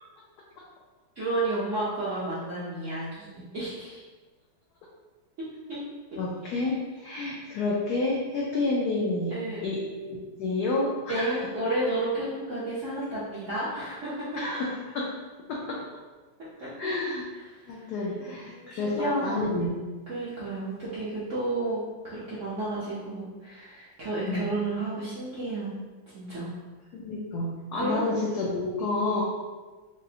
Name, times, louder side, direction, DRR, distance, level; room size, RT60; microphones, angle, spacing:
voice 1, 1.2-4.0 5.7-5.8 6.5-6.6 9.3-9.6 11.1-14.4 16.4-16.7 17.5-17.9 18.2-19.5 20.1-25.7 26.1-26.5 27.7-28.5, right 2 dB, 65° right, -10 dB, 0.7 m, -32 dB
voice 2, 6.2-9.4 9.6-9.8 10.1-11.4 14.4-15.2 15.5-15.8 16.8-17.3 17.7-19.8 24.2-24.5 26.9-29.2, left 2 dB, 85° left, -3 dB, 0.8 m, -29 dB
5.0 x 2.0 x 2.7 m, 1.3 s
omnidirectional pair, 2.2 m